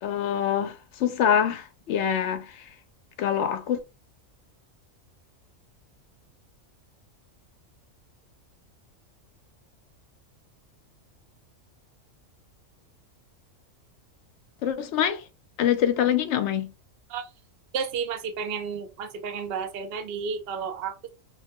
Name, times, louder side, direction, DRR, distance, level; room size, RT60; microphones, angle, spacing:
voice 1, 0.0-2.7 3.2-3.8 14.6-15.2 15.6-16.7, left 9 dB, 65° left, 0.8 m, -25 dB
voice 2, 17.7-21.1, right 6 dB, 60° right, 0.7 m, -32 dB
3.1 x 2.1 x 2.9 m
omnidirectional pair, 1.4 m